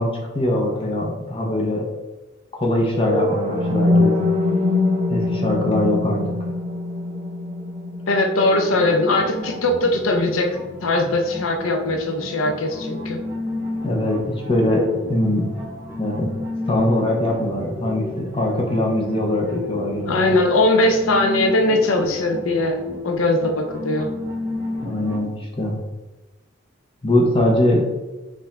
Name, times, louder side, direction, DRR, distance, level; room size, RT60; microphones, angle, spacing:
voice 1, 0.0-1.9 2.5-4.2 5.1-6.3 13.8-15.5 16.0-16.3 16.7-20.2 24.8-25.8 27.0-27.9, left 1 dB, 25° left, -1 dB, 0.9 m, -22 dB
sound 1, 3.0-11.0, left 2 dB, 30° right, 0.6 m, -24 dB
voice 2, 8.1-10.5 10.8-13.2 20.1-24.1, left 2 dB, 90° left, 3 dB, 0.6 m, -20 dB
sound 2, 8.4-25.2, left 2 dB, 10° right, 1.0 m, -32 dB
5.4 x 2.6 x 3.4 m, 1.1 s
head